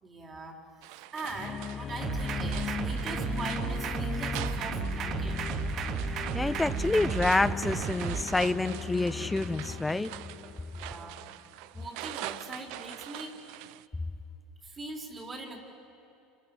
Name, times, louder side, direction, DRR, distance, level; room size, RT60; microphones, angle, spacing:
voice 1, 0.0-5.4 10.7-11.2 11.7-13.4 14.6-15.6, right 2 dB, 30° right, 2 dB, 4.2 m, -42 dB
sound 1, 0.8-13.9, right 17 dB, 65° right, 0.5 m, -44 dB
sound 2, 1.3-11.3, left 7 dB, 35° left, 0.6 m, -37 dB
sound 3, 2.0-8.2, right 7 dB, 50° right, 1.3 m, -34 dB
voice 2, 6.3-10.1, left 2 dB, 10° left, 13 dB, 1.0 m, -28 dB
27.5 x 27.5 x 8.0 m, 2.7 s
hypercardioid pair, 85°, 0 cm